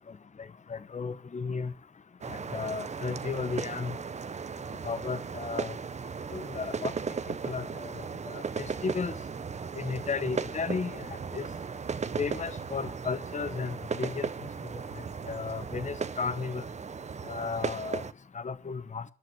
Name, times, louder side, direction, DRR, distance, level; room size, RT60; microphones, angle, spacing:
voice 1, 0.7-1.7 2.3-4.0 4.8-5.7 6.3-6.9 7.4-7.9 8.3-9.1 9.7-11.0 11.3-11.5 12.2-14.3 15.3-16.6 17.3-18.0 18.3-19.0, left 5 dB, 50° left, 1.0 m, -34 dB
sound 1, 2.2-18.1, right 5 dB, 45° right, 0.7 m, -36 dB
12.0 x 7.5 x 7.5 m
supercardioid pair, 40°, 16 cm